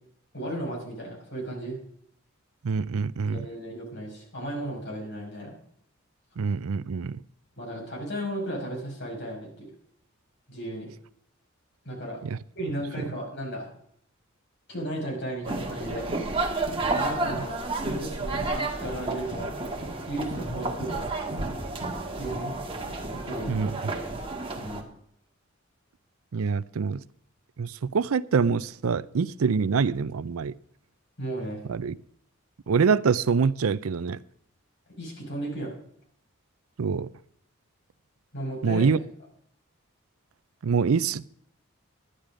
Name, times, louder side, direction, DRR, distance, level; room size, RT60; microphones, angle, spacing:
voice 1, 0.3-1.8 3.2-5.5 7.6-9.7 10.5-10.9 11.8-12.2 12.6-13.7 14.7-16.1 16.7-21.1 21.4-21.8 22.2-22.5 23.0-23.6 24.6-24.8 31.2-31.6 35.0-35.8 38.3-39.0, right 1 dB, 55° left, 5.5 m, -35 dB
voice 2, 2.6-3.5 6.4-7.2 12.2-12.4 23.5-23.7 26.3-27.0 27.6-30.5 31.7-32.0 32.7-34.2 36.8-37.1 38.6-39.0 40.6-41.3, right 5 dB, 85° right, 0.5 m, -25 dB
sound 1, 15.4-24.8, right 2 dB, 25° right, 1.7 m, -31 dB
11.5 x 10.5 x 5.0 m
head